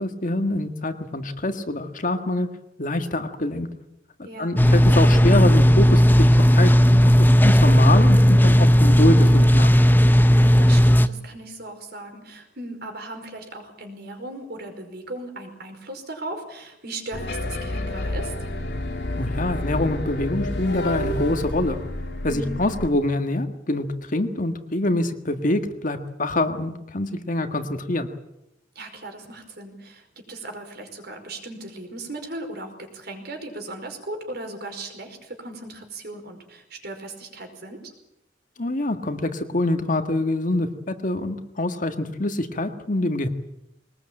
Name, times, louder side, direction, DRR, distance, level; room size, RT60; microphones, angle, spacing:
voice 1, 0.0-2.5 2.8-3.7 4.4-9.7 19.2-21.8 22.2-28.1 38.6-43.3, left 1 dB, 45° left, 7 dB, 1.7 m, -25 dB
voice 2, 4.2-4.6 10.6-18.3 22.3-22.6 28.8-37.9, right 2 dB, 60° right, 5 dB, 5.2 m, -37 dB
sound 1, 4.6-11.1, equal, 10° left, 0.8 m, -15 dB
sound 2, 17.1-22.9, left 1 dB, 65° left, 2.4 m, -29 dB
21.5 x 20.0 x 8.9 m, 0.86 s
head